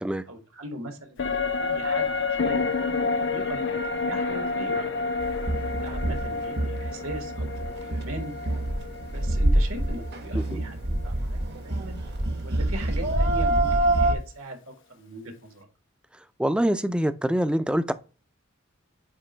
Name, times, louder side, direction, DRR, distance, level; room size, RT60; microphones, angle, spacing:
voice 1, 0.3-2.6 2.9-4.9 5.8-8.3 9.1-12.0 12.4-14.6 14.9-15.7, right 1 dB, 80° right, 1.8 m, -39 dB
sound 1, 1.2-10.7 11.0-11.1, left 4 dB, 65° left, 0.7 m, -29 dB
sound 2, 5.2-14.1, right 1 dB, 55° right, 1.0 m, -26 dB
voice 2, 16.4-17.9, right 1 dB, 5° right, 0.4 m, -25 dB
8.4 x 3.0 x 4.4 m
head